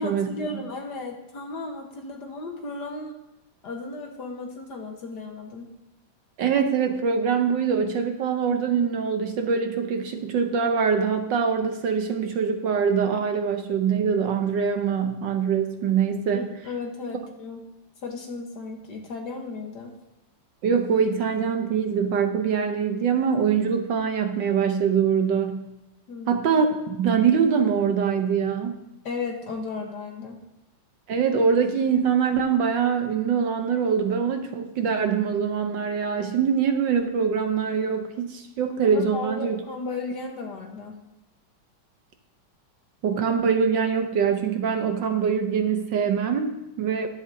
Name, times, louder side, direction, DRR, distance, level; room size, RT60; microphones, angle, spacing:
voice 1, 0.0-3.2 3.6-5.7 16.3-17.6 18.0-19.9 26.1-26.4 29.1-30.4 38.9-41.0, left 3 dB, 55° left, 2 dB, 1.7 m, -35 dB
voice 2, 6.4-16.5 20.6-25.6 26.3-28.8 31.1-39.6 43.0-47.1, right 6 dB, 65° right, 6 dB, 1.4 m, -23 dB
13.5 x 11.0 x 2.7 m, 0.91 s
omnidirectional pair, 2.3 m